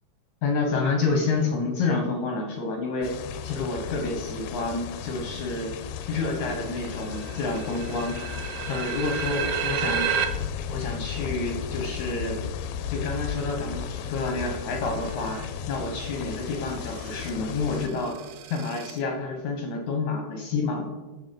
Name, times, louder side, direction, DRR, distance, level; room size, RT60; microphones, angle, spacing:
voice 1, 0.4-3.1 3.4-5.7 6.1-8.3 8.7-10.1 10.7-12.4 12.9-18.2 18.5-20.9, left 3 dB, 65° left, 2 dB, 1.9 m, -29 dB
sound 1, 3.0-17.9, left 8 dB, 90° left, 2.6 m, -35 dB
sound 2, 6.2-6.3 6.5-10.3 14.5-15.5 16.3-19.0, right 8 dB, 85° right, 1.8 m, -32 dB
13.0 x 5.6 x 5.4 m, 1.2 s
omnidirectional pair, 4.6 m